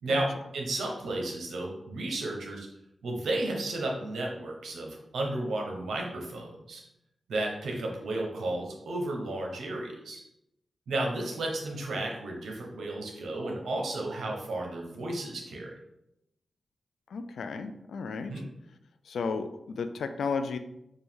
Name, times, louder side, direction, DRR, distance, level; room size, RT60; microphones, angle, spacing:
voice 1, 0.0-2.7 3.0-6.8 7.3-10.2 10.9-15.7 18.3-18.5, right 2 dB, 85° right, 0 dB, 0.9 m, -33 dB
voice 2, 17.1-18.4 19.1-20.6, left 5 dB, 85° left, 9 dB, 0.3 m, -33 dB
4.5 x 2.6 x 3.6 m, 0.83 s
cardioid pair, 55°, 0 cm